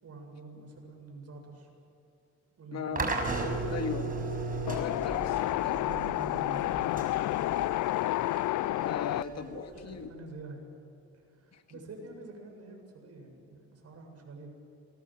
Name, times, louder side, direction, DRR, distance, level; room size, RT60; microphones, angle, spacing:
voice 1, 0.0-1.7 2.6-3.1 3.6-5.0 5.8-7.2 9.3-10.7 11.3-14.5, right 3 dB, 55° right, 2 dB, 7.4 m, -47 dB
voice 2, 2.7-3.2 3.7-4.1 4.7-5.8 8.8-10.1 11.5-11.6, left 6 dB, 60° left, 7 dB, 2.0 m, -38 dB
sound 1, 3.0-10.0, right 3 dB, 30° right, 5.9 m, -36 dB
Wind, 4.7-9.2, left 15 dB, 75° left, 0.5 m, -30 dB
26.5 x 21.5 x 7.7 m, 2.9 s
cardioid pair, 90°, 30 cm